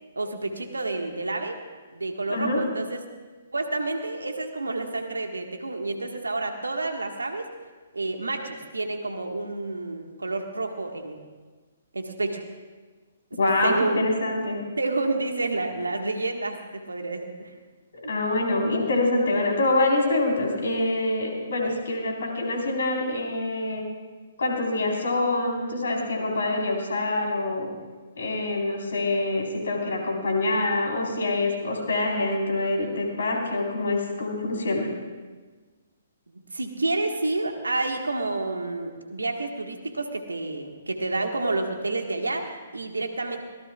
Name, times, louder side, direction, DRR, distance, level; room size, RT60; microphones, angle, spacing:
voice 1, 0.1-1.6 1.9-3.0 3.5-7.5 7.9-11.2 11.9-12.4 13.6-14.0 14.8-17.5 21.6-21.7 36.3-43.4, right 2 dB, 80° right, 4 dB, 1.6 m, -29 dB
voice 2, 2.3-2.6 13.4-14.6 18.0-23.8 24.4-27.7 28.2-34.9, left 2 dB, 65° left, 0 dB, 4.2 m, -25 dB
24.5 x 17.5 x 2.4 m, 1.4 s
figure-of-eight pair, 130°, 0 cm